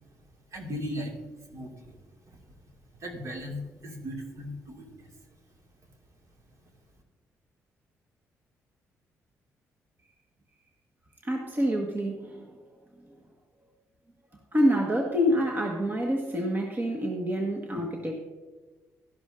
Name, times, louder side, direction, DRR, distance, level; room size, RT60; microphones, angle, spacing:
voice 1, 0.5-1.1 1.5-2.0 2.3-2.4 3.0-5.2, equal, 55° right, 1 dB, 2.3 m, -37 dB
voice 2, 11.2-12.5 14.5-18.2, equal, 30° right, 1 dB, 1.5 m, -27 dB
12.5 x 11.0 x 2.6 m, 1.3 s
supercardioid pair, 60°, 6 cm